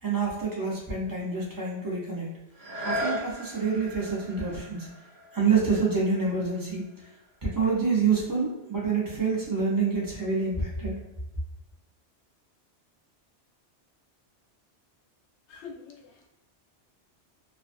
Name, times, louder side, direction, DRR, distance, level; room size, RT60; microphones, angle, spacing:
voice 1, 0.0-2.3 2.8-4.9 5.3-7.1 7.4-11.0, right 4 dB, 25° right, -4 dB, 0.5 m, -27 dB
sound 1, 2.5-8.2 8.7-8.8, equal, 65° right, 1.0 m, -38 dB
voice 2, 15.5-16.3, left 5 dB, 75° left, 2 dB, 0.8 m, -45 dB
2.5 x 2.1 x 2.5 m, 0.93 s
omnidirectional pair, 1.2 m